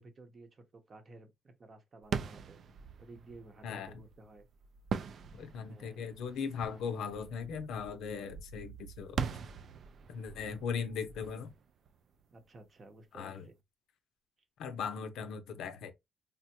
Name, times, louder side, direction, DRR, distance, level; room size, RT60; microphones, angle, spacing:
voice 1, 0.0-2.6 3.0-4.5 5.7-6.1 12.3-13.5, right 2 dB, 40° right, 0.9 m, -54 dB
sound 1, 2.0-12.6, right 6 dB, 60° right, 0.4 m, -42 dB
voice 2, 3.6-4.0 5.4-9.2 10.1-11.5 13.1-13.5 14.6-15.9, left 6 dB, 80° left, 0.5 m, -38 dB
3.4 x 2.1 x 2.8 m
cardioid pair, 90°, 0 cm